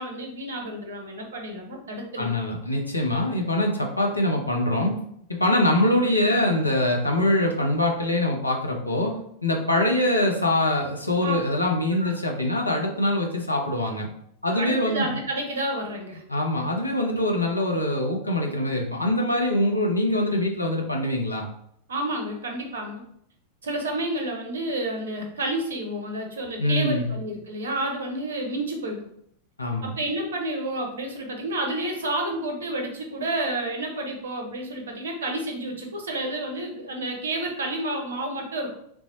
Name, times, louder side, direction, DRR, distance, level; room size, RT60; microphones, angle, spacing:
voice 1, 0.0-2.3 11.2-11.4 12.0-12.2 14.5-16.2 21.9-23.0 23.6-29.1 29.8-38.8, right 1 dB, 65° right, 2 dB, 0.7 m, -30 dB
voice 2, 2.2-5.0 5.3-14.1 14.4-15.2 16.3-21.5 26.6-27.2 29.6-30.0, left 1 dB, 85° left, 0 dB, 0.6 m, -24 dB
3.4 x 2.0 x 2.9 m, 0.70 s
figure-of-eight pair, 90°, 0 cm